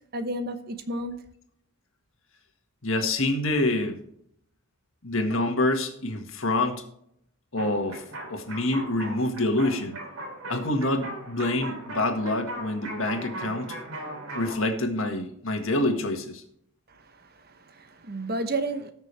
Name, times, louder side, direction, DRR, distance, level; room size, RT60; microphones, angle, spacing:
voice 1, 0.1-1.2 16.9-18.9, right 2 dB, 45° right, 1.0 m, -32 dB
voice 2, 2.8-4.0 5.0-6.8 7.5-8.0 8.3-10.0 10.5-13.8 14.3-16.4, left 2 dB, 65° left, 1.8 m, -26 dB
sound 1, 7.6-14.5, right 1 dB, 80° right, 3.2 m, -38 dB
19.0 x 6.4 x 3.4 m
head